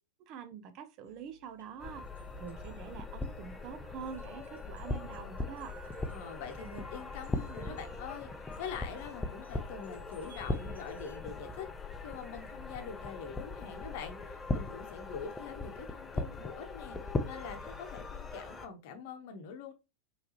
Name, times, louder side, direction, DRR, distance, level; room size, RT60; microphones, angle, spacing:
voice 1, 0.2-5.8, right 7 dB, 40° right, 0.6 m, -45 dB
sound 1, 1.0-11.2, right 3 dB, 75° right, 1.5 m, -60 dB
sound 2, 1.8-18.7, left 2 dB, 10° left, 0.6 m, -40 dB
voice 2, 6.1-8.3 8.6-11.7 12.0-17.0 17.2-19.7, left 6 dB, 50° left, 0.9 m, -44 dB
4.6 x 3.2 x 3.0 m
figure-of-eight pair, 90°, 0 cm